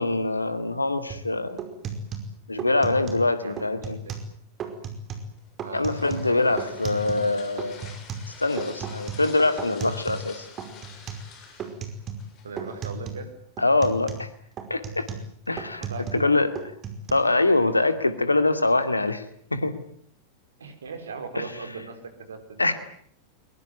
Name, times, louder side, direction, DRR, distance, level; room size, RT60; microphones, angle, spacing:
voice 1, 0.0-1.6 2.5-4.0 5.7-7.9 8.4-10.5 13.6-14.3 14.7-15.1 15.5-15.8 16.2-16.5 17.1-19.2 19.5-19.8 22.6-22.7, left 2 dB, 80° left, 11 dB, 2.4 m, -24 dB
sound 1, 1.1-1.3 1.6-3.3 3.6-4.3 4.6-5.3 5.6-7.3 7.6-10.3 10.6-11.3 11.6-12.3 12.6-13.3 13.6-16.3 16.6-17.1, right 5 dB, 30° right, 5.1 m, -35 dB
voice 2, 3.4-4.1 5.6-6.7 7.2-7.3 12.4-13.4 15.8-16.3 20.6-22.6, right 4 dB, 70° right, 9 dB, 4.7 m, -39 dB
sound 2, 5.4-12.9, left 5 dB, 35° left, 6.9 m, -48 dB
22.5 x 22.5 x 9.4 m, 0.62 s
figure-of-eight pair, 90°, 0 cm